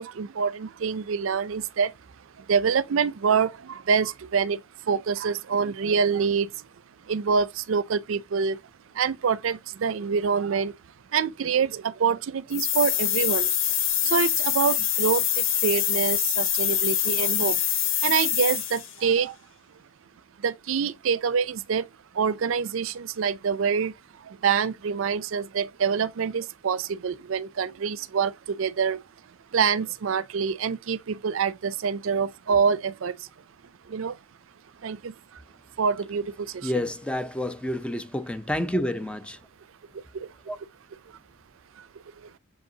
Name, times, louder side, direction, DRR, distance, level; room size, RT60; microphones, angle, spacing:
voice 1, 0.0-1.9 2.4-6.7 7.0-8.6 8.9-10.7 11.1-13.5 14.0-17.6 18.0-19.4 20.4-21.9 22.1-29.0 29.5-33.3 33.9-34.2 34.8-35.4 35.8-36.7 40.1-40.3 41.8-41.9 42.2-42.3, right 6 dB, 75° right, 0.5 m, -26 dB
sound 1, 12.5-19.0, left 10 dB, 70° left, 1.2 m, -25 dB
voice 2, 36.6-39.4 40.5-40.6, left 1 dB, 5° left, 0.6 m, -29 dB
6.9 x 5.3 x 2.8 m
head